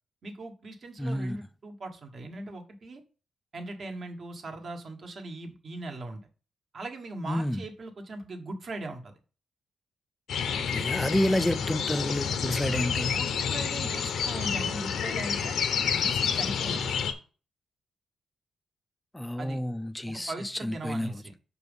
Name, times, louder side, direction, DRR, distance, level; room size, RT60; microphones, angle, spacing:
voice 1, 0.2-3.0 3.5-6.2 6.7-9.2 11.1-11.2 13.0-15.5 15.9-16.9 19.4-19.6 20.1-21.3, right 2 dB, 45° right, 1.3 m, -39 dB
voice 2, 1.0-1.4 7.3-7.6 10.6-13.1 19.1-20.3 20.6-21.1, equal, 5° left, 0.3 m, -29 dB
sound 1, 10.3-17.1, left 7 dB, 80° left, 0.7 m, -29 dB
6.1 x 4.6 x 5.3 m
wide cardioid pair, 135°, 0 cm